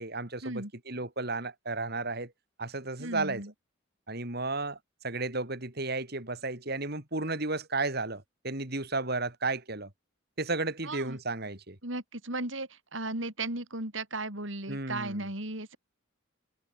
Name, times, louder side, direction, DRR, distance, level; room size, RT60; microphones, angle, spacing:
voice 1, 0.0-2.3 2.6-3.4 4.1-4.8 5.0-9.9 10.4-11.8 14.7-15.3, right 3 dB, 50° right, 3.9 m, -33 dB
voice 2, 3.0-3.5 10.8-11.2 11.8-15.8, right 2 dB, 70° right, 6.3 m, -36 dB
head